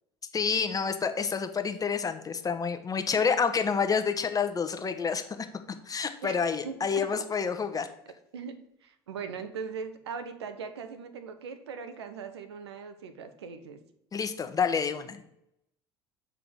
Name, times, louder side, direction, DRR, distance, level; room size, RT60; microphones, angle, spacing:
voice 1, 0.3-7.9 14.1-15.2, left 6 dB, 25° left, 8 dB, 0.9 m, -29 dB
voice 2, 6.2-7.4 8.3-8.5 8.8-13.8, right 6 dB, 90° right, 9 dB, 0.8 m, -40 dB
6.9 x 3.7 x 6.1 m, 0.79 s
hypercardioid pair, 75°, 13 cm